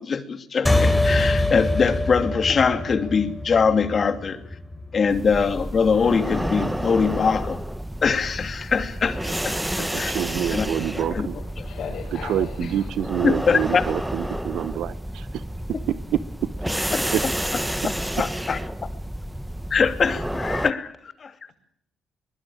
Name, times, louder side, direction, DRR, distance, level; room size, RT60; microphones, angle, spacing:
voice 1, 0.0-4.4 4.9-7.6 8.0-10.1 10.5-11.3 11.6-11.7 13.2-13.8 16.9-17.0 18.2-18.6 19.7-20.9 21.2-21.5, left 5 dB, 45° left, 10 dB, 2.7 m, -23 dB
sound 1, 0.7-5.5, left 2 dB, 10° left, 4.1 m, -24 dB
sound 2, 5.1-20.7, right 1 dB, 5° right, 1.4 m, -30 dB
voice 2, 9.8-11.4 12.1-15.4 15.7-16.2 17.1-17.2, right 11 dB, 80° right, 15 dB, 0.9 m, -27 dB
voice 3, 11.3-12.8 20.4-20.6, left 6 dB, 70° left, -2 dB, 7.0 m, -36 dB
23.0 x 21.5 x 8.7 m, 0.70 s
cardioid pair, 90°, 0 cm